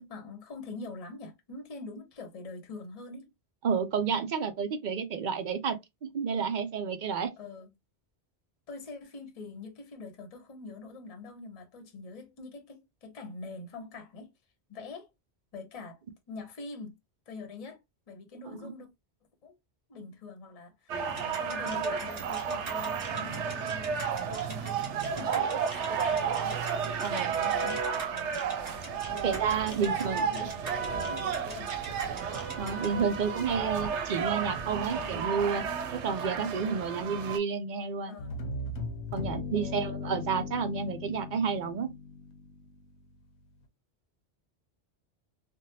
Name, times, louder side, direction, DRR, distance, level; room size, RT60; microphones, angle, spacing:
voice 1, 0.0-3.3 7.4-7.7 8.7-14.3 14.7-15.1 15.5-16.0 16.3-17.0 17.3-17.8 18.1-18.9 19.4-19.6 19.9-24.9 25.2-28.4 29.1-29.4 29.8-31.7 38.1-38.3 39.5-39.9, left 4 dB, 35° left, 0.7 m, -44 dB
voice 2, 3.6-5.8 6.0-7.3 18.4-18.7 27.0-27.3 29.2-30.3 32.6-35.6 35.9-38.2 39.1-41.9, right 6 dB, 55° right, 0.6 m, -30 dB
sound 1, 20.9-37.4, right 6 dB, 85° right, 0.9 m, -32 dB
sound 2, 21.2-32.9, right 3 dB, 40° right, 1.0 m, -43 dB
sound 3, 38.2-43.0, left 3 dB, 75° left, 0.8 m, -38 dB
3.4 x 2.1 x 2.7 m
omnidirectional pair, 1.2 m